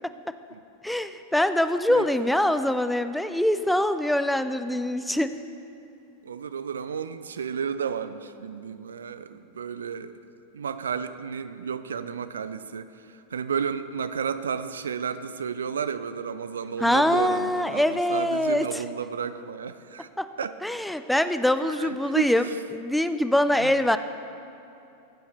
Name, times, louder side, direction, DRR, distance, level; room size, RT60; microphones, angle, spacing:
voice 1, 0.8-5.4 16.8-18.8 20.2-20.3 20.6-22.5 22.7-24.0, left 1 dB, 5° left, 11 dB, 0.4 m, -24 dB
voice 2, 6.2-10.1 10.5-20.1 20.4-20.6 21.6-22.6 23.6-23.8, right 7 dB, 70° right, 12 dB, 0.4 m, -32 dB
14.5 x 8.5 x 4.0 m, 2.7 s
figure-of-eight pair, 90°, 0 cm